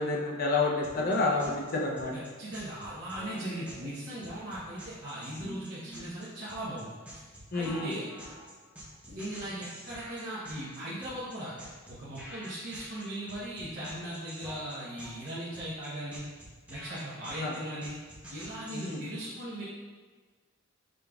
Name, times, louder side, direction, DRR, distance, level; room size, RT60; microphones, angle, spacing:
voice 1, 0.0-2.1 7.5-7.9 17.4-17.5 18.7-19.0, left 3 dB, 45° left, -1 dB, 0.5 m, -29 dB
sound 1, 0.8-19.0, equal, 5° right, 0.8 m, -47 dB
voice 2, 2.1-7.0 7.5-8.1 9.1-11.5 11.9-16.2 16.7-18.0 18.3-19.6, right 1 dB, 50° right, -10 dB, 0.8 m, -38 dB
5.0 x 3.6 x 2.3 m, 1.4 s
head